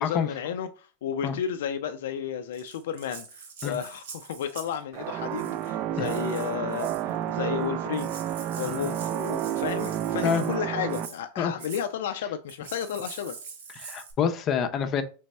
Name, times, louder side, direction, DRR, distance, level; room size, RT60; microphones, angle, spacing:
voice 1, 0.0-13.4, left 8 dB, 80° left, 0.4 m, -33 dB
Rattle (instrument), 2.5-4.8 5.3-5.7 6.0-7.1 7.6-7.7 7.9-10.6 10.9-11.2 11.6-11.9 12.5-14.1, right 5 dB, 90° right, 1.3 m, -44 dB
sound 1, 4.9-11.1, right 11 dB, 40° right, 0.3 m, -30 dB
voice 2, 13.7-15.0, left 7 dB, 30° left, 0.5 m, -26 dB
3.3 x 3.3 x 4.1 m
supercardioid pair, 150°, 0 cm